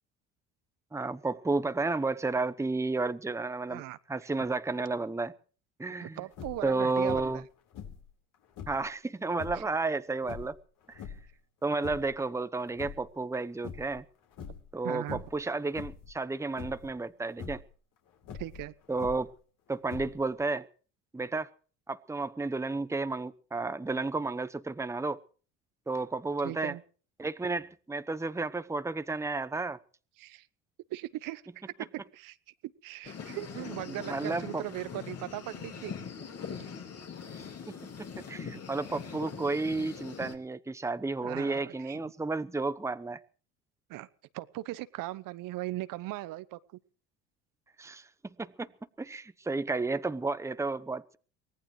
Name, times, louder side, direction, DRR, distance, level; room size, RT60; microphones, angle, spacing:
voice 1, 0.9-3.8 4.1-5.3 5.8-6.2 6.6-7.4 8.7-10.6 10.9-11.0 11.6-14.0 14.7-17.6 18.9-19.3 19.7-20.7 21.1-21.5 21.9-25.2 25.9-26.7 27.2-29.8 33.2-33.4 33.9-34.6 38.2-43.2 47.8-48.0 48.4-48.7 49.0-51.2, right 3 dB, 10° right, 0.9 m, -32 dB
voice 2, 6.0-7.4 9.5-9.6 14.8-15.2 18.4-18.7 26.4-26.8 30.2-30.5 30.9-32.4 32.6-35.9 41.2-42.0 43.9-44.1 44.3-46.6, right 17 dB, 65° right, 1.0 m, -39 dB
sound 1, 6.3-6.7 7.1-7.4 7.7-8.9 9.3-9.7 10.2-11.3 11.7-12.2 12.6-13.4 13.6-14.0 14.3-14.7 15.1-15.4 15.7-16.1 16.6-16.9 17.3-17.7 18.2-19.4 19.8-20.4, left 7 dB, 60° left, 4.2 m, -44 dB
sound 2, 33.0-40.3, left 6 dB, 45° left, 4.0 m, -42 dB
24.0 x 18.5 x 3.2 m
hypercardioid pair, 75°, 36 cm